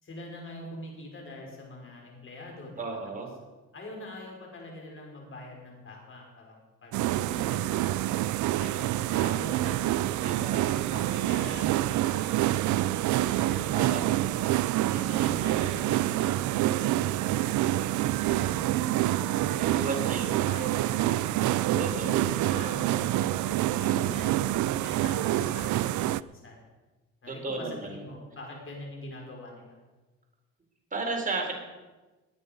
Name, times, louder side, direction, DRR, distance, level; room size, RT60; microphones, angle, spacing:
voice 1, 0.0-3.0 3.7-8.2 8.6-13.8 14.3-14.5 14.9-18.8 19.2-20.0 20.2-24.4 24.7-26.6 27.2-29.8, left 1 dB, 45° left, 0 dB, 5.5 m, -43 dB
voice 2, 2.8-3.3 7.0-7.6 10.2-10.6 13.7-14.0 14.3-14.4 19.7-20.4 21.8-22.2 23.8-24.2 27.3-28.0 30.9-31.5, right 3 dB, 25° right, 1 dB, 4.0 m, -34 dB
sound 1, 6.9-26.2, right 14 dB, 75° right, 0.4 m, -27 dB
18.5 x 9.6 x 5.4 m, 1.2 s
cardioid pair, 90°, 30 cm